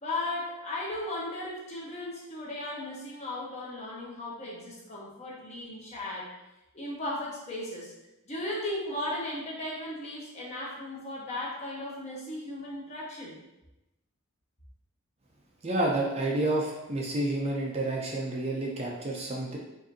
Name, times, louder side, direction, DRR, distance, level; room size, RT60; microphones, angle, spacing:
voice 1, 0.0-6.3 6.7-7.9 8.3-13.4, left 1 dB, 30° left, -4 dB, 0.9 m, -36 dB
voice 2, 15.6-19.6, right 2 dB, 30° right, -2 dB, 0.5 m, -29 dB
4.9 x 2.6 x 2.7 m, 0.95 s
head